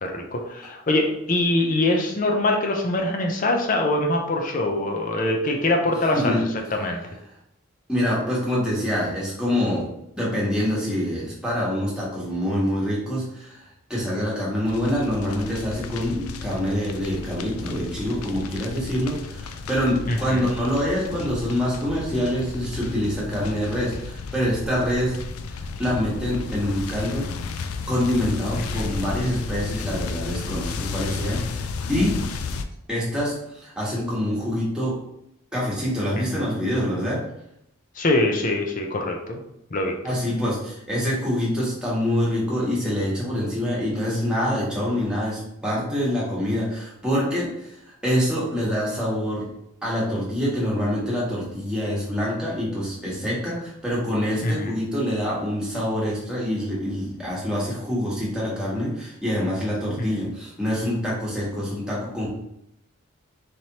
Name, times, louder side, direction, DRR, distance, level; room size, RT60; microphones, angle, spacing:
voice 1, 0.0-7.0 20.1-20.5 28.6-29.0 36.2-36.5 38.0-39.4 39.7-40.2 54.4-54.7 60.1-60.2, left 2 dB, 40° left, 3 dB, 0.5 m, -24 dB
voice 2, 7.9-9.9 10.1-25.1 25.5-27.6 27.9-32.1 32.9-34.9 35.5-37.2 40.0-49.5 49.8-62.3, equal, 5° right, -7 dB, 1.3 m, -25 dB
sound 1, 14.7-32.6, left 4 dB, 90° left, 0.4 m, -33 dB
4.2 x 3.3 x 2.8 m, 0.80 s
head